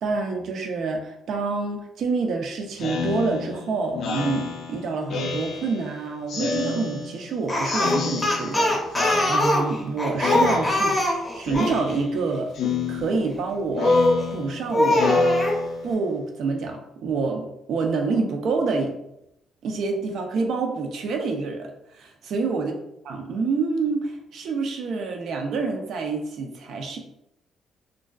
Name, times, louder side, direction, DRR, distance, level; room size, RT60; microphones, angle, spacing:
voice 1, 0.0-12.5 12.9-14.0 14.3-15.1 15.8-18.9 19.6-22.8 23.1-27.0, right 4 dB, 70° right, 3 dB, 0.4 m, -27 dB
Speech synthesizer, 2.8-5.9 6.3-7.3 7.6-8.7 8.9-9.9 10.2-11.1 11.4-12.2 12.5-16.1, left 4 dB, 70° left, 0.3 m, -29 dB
Speech, 7.5-11.8 13.8-14.2 14.7-15.6, left 1 dB, 15° left, 0.6 m, -22 dB
2.5 x 2.3 x 2.2 m, 0.82 s
cardioid pair, 90°, 0 cm